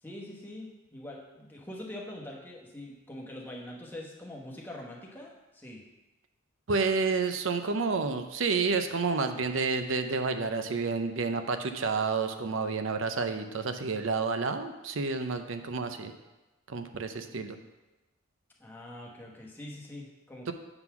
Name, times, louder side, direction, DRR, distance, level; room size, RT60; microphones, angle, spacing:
voice 1, 0.0-5.8 18.6-20.5, left 1 dB, 10° left, -3 dB, 1.0 m, -44 dB
voice 2, 6.7-16.1 16.7-17.6 20.5-20.6, right 4 dB, 70° right, 8 dB, 0.6 m, -30 dB
7.8 x 3.9 x 5.8 m, 1.1 s
head